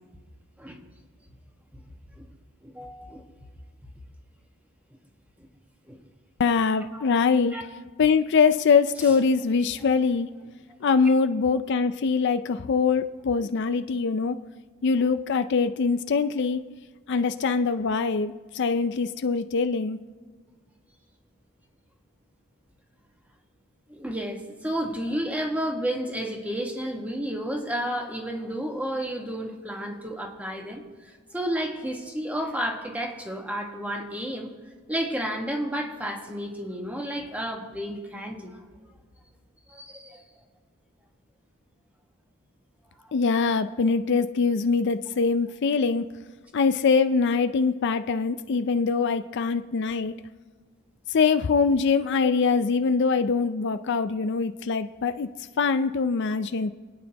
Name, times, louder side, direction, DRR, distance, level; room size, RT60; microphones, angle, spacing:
voice 1, 2.6-3.2 5.4-5.5 5.9-6.0 6.9-7.0 7.5-7.6 9.0-9.1 13.4-13.5 23.9-34.5 34.9-38.6 39.7-40.2 43.0-43.1 52.2-52.3, equal, 5° right, 1 dB, 1.5 m, -32 dB
voice 2, 6.4-7.6 8.0-10.3 10.8-14.4 14.8-16.6 17.1-20.0 43.1-46.1 46.5-50.1 51.1-55.3 55.6-56.7, left 5 dB, 55° left, 10 dB, 0.4 m, -23 dB
27.5 x 9.5 x 2.9 m, 1.5 s
head